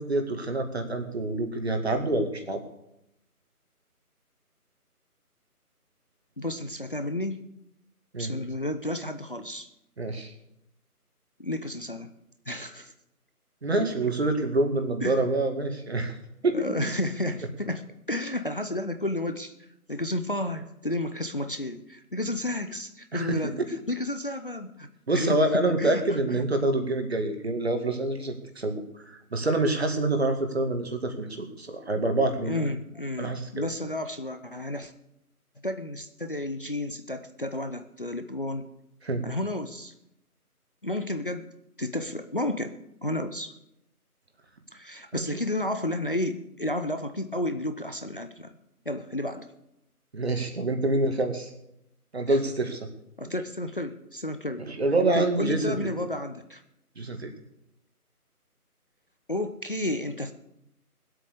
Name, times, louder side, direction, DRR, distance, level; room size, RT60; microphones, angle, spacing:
voice 1, 0.0-2.6 8.1-8.3 10.0-10.3 13.6-16.1 16.4-16.9 23.1-23.4 25.1-28.8 29.1-32.6 33.2-33.7 39.0-39.2 45.1-45.3 50.1-51.5 52.1-52.9 54.7-55.9 57.0-57.3, right 2 dB, 45° right, 5 dB, 2.3 m, -26 dB
voice 2, 6.4-7.4 8.2-9.7 11.4-12.1 12.5-12.9 15.0-15.2 16.5-19.5 19.9-23.6 23.9-26.5 32.4-34.9 35.6-38.6 39.2-39.9 40.8-41.5 41.8-42.8 43.0-43.5 44.7-48.6 48.9-49.5 52.3-52.4 53.2-54.6 55.1-56.6 59.3-60.3, left 1 dB, 35° left, 8 dB, 0.8 m, -32 dB
20.5 x 8.3 x 6.8 m, 0.84 s
figure-of-eight pair, 160°, 46 cm